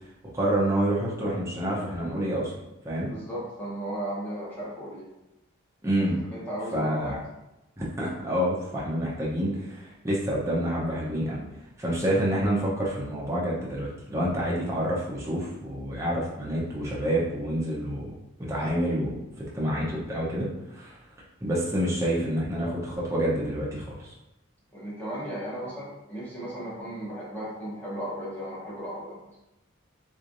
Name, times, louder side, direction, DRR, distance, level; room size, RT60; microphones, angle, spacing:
voice 1, 0.3-2.5 2.8-3.1 5.8-6.2 6.7-7.1 7.8-11.4 11.8-18.1 18.5-19.2 19.5-21.0 21.4-24.1, right 1 dB, 15° right, -6 dB, 0.8 m, -28 dB
voice 2, 3.1-5.1 6.2-7.2 24.7-29.4, right 1 dB, 10° left, -9 dB, 1.1 m, -35 dB
3.6 x 3.1 x 2.6 m, 0.92 s
head